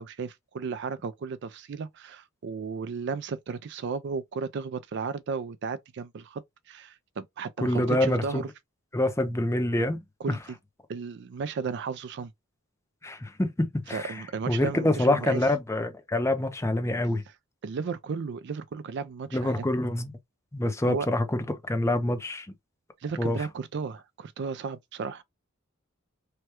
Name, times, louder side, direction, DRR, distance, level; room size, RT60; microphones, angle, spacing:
voice 1, 0.0-6.4 6.7-8.5 10.2-10.6 10.9-12.3 13.9-15.4 17.6-19.7 20.8-21.1 23.0-25.2, right 5 dB, 55° right, 0.4 m, -34 dB
voice 2, 7.6-8.4 8.9-10.0 10.3-10.4 13.0-14.1 14.5-17.2 19.3-20.2 20.5-22.5 23.2-23.4, left 1 dB, 15° left, 0.5 m, -26 dB
3.2 x 2.2 x 2.9 m
head